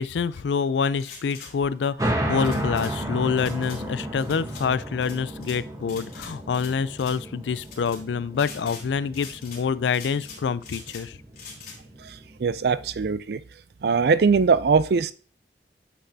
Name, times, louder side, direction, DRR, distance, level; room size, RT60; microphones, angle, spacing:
voice 1, 0.0-11.2, left 6 dB, 85° left, 0.4 m, -26 dB
sound 1, 1.0-1.5 2.4-2.9 3.4-3.8 4.2-4.6 5.0-5.6 5.9-6.7 7.0-7.2 7.6-8.0 8.3-8.9 9.1-9.6 9.9-11.0 11.3-11.8, left 5 dB, 55° left, 2.8 m, -43 dB
sound 2, 2.0-13.1, right 1 dB, 20° right, 1.1 m, -33 dB
voice 2, 12.0-13.4 13.8-15.1, right 5 dB, 60° right, 0.4 m, -21 dB
8.4 x 5.9 x 2.7 m
head